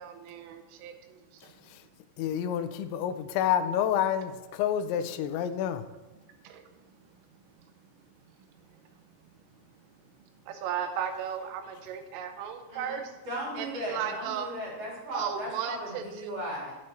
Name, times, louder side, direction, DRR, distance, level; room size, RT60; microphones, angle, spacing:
voice 1, 0.0-1.5 6.4-6.6 10.5-13.1 13.6-14.5 15.1-16.3, right 8 dB, 85° right, 3.2 m, -35 dB
voice 2, 2.2-5.8, left 9 dB, 85° left, 2.6 m, -28 dB
voice 3, 13.2-16.7, equal, 35° right, 3.4 m, -36 dB
9.4 x 7.5 x 4.4 m
omnidirectional pair, 5.8 m